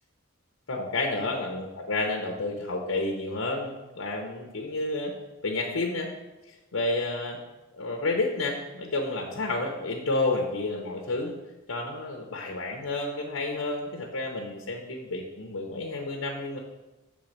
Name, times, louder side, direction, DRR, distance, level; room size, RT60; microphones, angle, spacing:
voice 1, 0.7-5.1 5.4-6.1 6.5-7.4 7.7-11.3 11.7-16.6, left 2 dB, 75° left, 1 dB, 0.9 m, -30 dB
7.2 x 3.7 x 6.4 m, 1.0 s
head